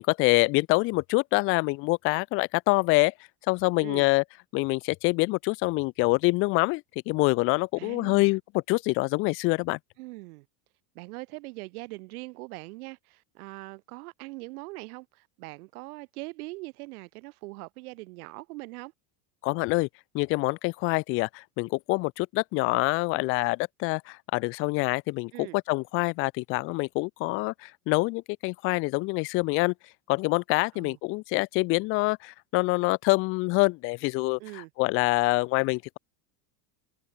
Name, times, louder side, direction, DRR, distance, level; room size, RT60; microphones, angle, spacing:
voice 1, 0.0-3.1 3.5-4.2 4.5-8.4 8.7-9.8 19.4-19.9 20.1-29.7 30.1-36.0, left 25 dB, 30° left, 0.5 m, -26 dB
voice 2, 3.8-4.1 7.8-8.3 10.0-10.5 10.9-18.9 25.3-25.6 30.7-31.0 34.4-34.7, right 24 dB, 65° right, 5.9 m, -42 dB
supercardioid pair, 175°, 47 cm